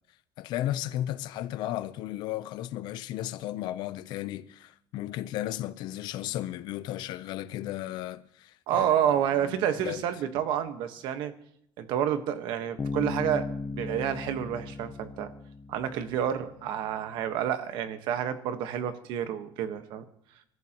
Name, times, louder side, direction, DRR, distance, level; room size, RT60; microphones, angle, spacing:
voice 1, 0.4-10.0, left 13 dB, 60° left, 0.6 m, -35 dB
voice 2, 8.7-11.3 11.8-15.3 15.7-20.0, right 9 dB, 65° right, 1.3 m, -29 dB
Bass guitar, 12.8-16.4, left 3 dB, 15° left, 0.5 m, -36 dB
26.0 x 14.0 x 3.0 m
cardioid pair, 180°, 8 cm